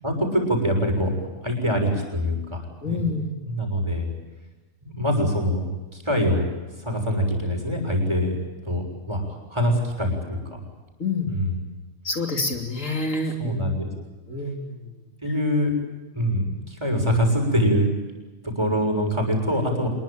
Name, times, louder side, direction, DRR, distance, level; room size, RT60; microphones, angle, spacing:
voice 1, 0.0-1.2 1.4-3.0 3.4-4.1 4.8-6.5 6.8-8.3 8.6-10.6 11.3-11.7 13.4-13.9 15.2-15.7 16.1-17.9 18.4-19.9, equal, 20° right, 2 dB, 6.7 m, -24 dB
voice 2, 2.8-3.3 11.0-11.3 12.0-13.7 14.3-14.9, left 3 dB, 65° left, 2 dB, 3.3 m, -27 dB
26.5 x 22.0 x 8.8 m, 1.2 s
omnidirectional pair, 1.5 m